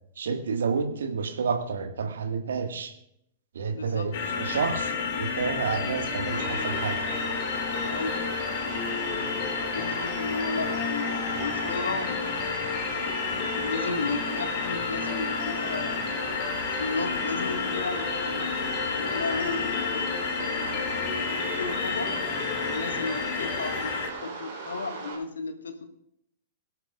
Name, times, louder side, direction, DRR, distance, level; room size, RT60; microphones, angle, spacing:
voice 1, 0.2-2.9 3.5-4.9 5.2-7.1, right 5 dB, 65° right, 5 dB, 1.8 m, -29 dB
voice 2, 3.7-4.1 7.9-8.2 8.5-8.6 9.7-12.2 13.5-16.1 16.6-18.4 18.9-22.1 22.5-25.8, left 3 dB, 70° left, 6 dB, 1.7 m, -34 dB
sound 1, 4.1-24.1, left 5 dB, 50° left, 2.2 m, -31 dB
sound 2, 5.7-24.0, left 4 dB, 35° left, 3.0 m, -40 dB
sound 3, 6.3-25.1, right 4 dB, 45° right, 4.1 m, -38 dB
22.5 x 11.5 x 2.5 m, 0.76 s
figure-of-eight pair, 100°, 0 cm